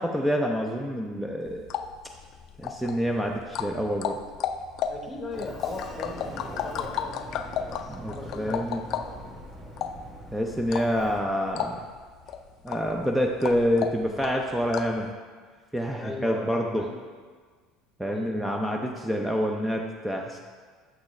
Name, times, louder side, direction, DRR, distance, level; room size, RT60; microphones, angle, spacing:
voice 1, 0.0-1.6 2.6-4.2 7.9-8.8 10.3-11.8 12.6-15.1 15.7-16.8 18.0-20.4, equal, 5° right, 1 dB, 0.5 m, -27 dB
sound 1, 1.5-15.0, left 8 dB, 55° left, 0.4 m, -35 dB
voice 2, 4.9-9.1 16.0-17.0 18.0-18.6, left 2 dB, 20° left, 1 dB, 1.0 m, -39 dB
Sliding door, 5.3-11.2, right 1 dB, 25° right, 1.1 m, -43 dB
6.2 x 6.0 x 3.2 m, 1.5 s
supercardioid pair, 95°, 0 cm